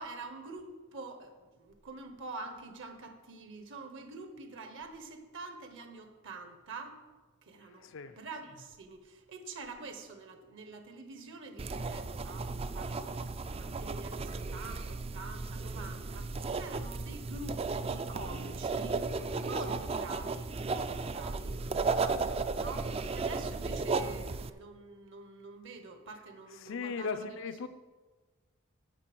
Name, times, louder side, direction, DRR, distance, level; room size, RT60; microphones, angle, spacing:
voice 1, 0.0-7.0 7.4-13.1 13.6-19.0 19.4-21.6 22.5-27.4, right 3 dB, 60° right, 6 dB, 1.2 m, -46 dB
voice 2, 7.8-8.2 26.6-27.7, left 5 dB, 65° left, 11 dB, 0.5 m, -37 dB
sound 1, 11.6-24.5, right 4 dB, 30° right, 0.4 m, -35 dB
9.7 x 7.0 x 6.1 m, 1.3 s
head